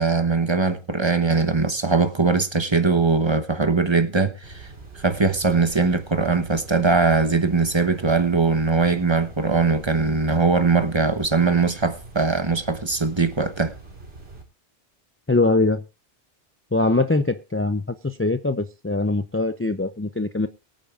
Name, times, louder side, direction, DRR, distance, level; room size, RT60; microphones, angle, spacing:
voice 1, 0.0-4.7 4.9-13.7, right 4 dB, 25° right, 1.0 m, -21 dB
sound 1, 4.4-14.4, right 3 dB, 60° right, 3.6 m, -43 dB
voice 2, 15.3-15.8 16.7-20.5, left 2 dB, 20° left, 0.3 m, -22 dB
23.0 x 8.9 x 2.5 m
omnidirectional pair, 1.2 m